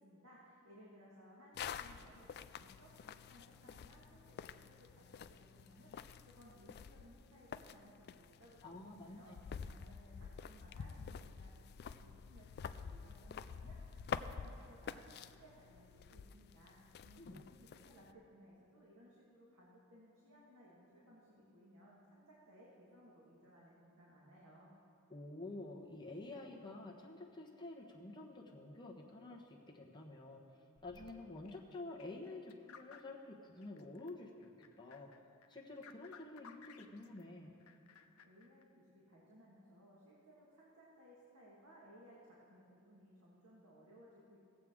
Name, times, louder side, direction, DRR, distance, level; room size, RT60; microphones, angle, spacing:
voice 1, 0.0-9.3 9.7-11.5 11.8-24.7 38.2-44.4, equal, 85° right, -5 dB, 1.7 m, -62 dB
sound 1, 1.6-18.1, left 7 dB, 50° left, 0.3 m, -49 dB
voice 2, 8.6-9.2 17.2-17.4 25.1-30.4 30.8-34.5 34.8-35.1 35.5-37.5, left 2 dB, 20° left, -2 dB, 1.1 m, -49 dB
sound 2, 30.8-34.1 34.4-37.3 37.6-38.6, left 6 dB, 85° left, 0.6 m, -60 dB
17.5 x 7.6 x 3.7 m, 2.5 s
head